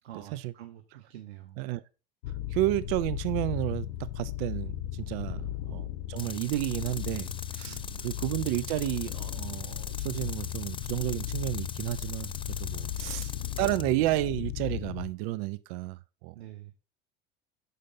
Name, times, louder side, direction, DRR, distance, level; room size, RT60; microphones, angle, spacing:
voice 1, 0.0-1.6 5.3-5.6 7.6-8.1 12.7-13.1 16.3-16.7, right 13 dB, 90° right, 1.0 m, -47 dB
sound 1, 2.2-15.1, left 13 dB, 75° left, 0.8 m, -36 dB
voice 2, 2.5-5.4 5.7-16.3, right 17 dB, 70° right, 0.6 m, -31 dB
Tools, 6.2-13.8, left 6 dB, 15° left, 0.4 m, -42 dB
6.7 x 5.0 x 5.6 m
hypercardioid pair, 80°, 31 cm